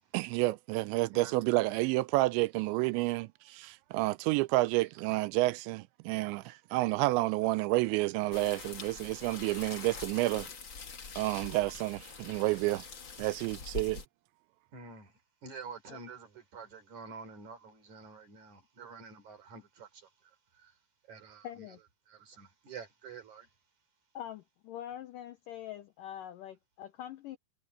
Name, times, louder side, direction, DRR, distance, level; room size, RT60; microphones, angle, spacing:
voice 1, 0.1-10.5 11.2-12.9 13.2-14.0, right 20 dB, 85° right, 2.9 m, -30 dB
sound 1, 8.3-14.0, left 5 dB, 40° left, 1.9 m, -45 dB
voice 2, 14.7-20.7 21.1-21.7 22.1-23.5, right 5 dB, 45° right, 5.0 m, -49 dB
voice 3, 21.4-21.8 24.1-27.4, left 11 dB, 85° left, 1.9 m, -44 dB
omnidirectional pair, 5.1 m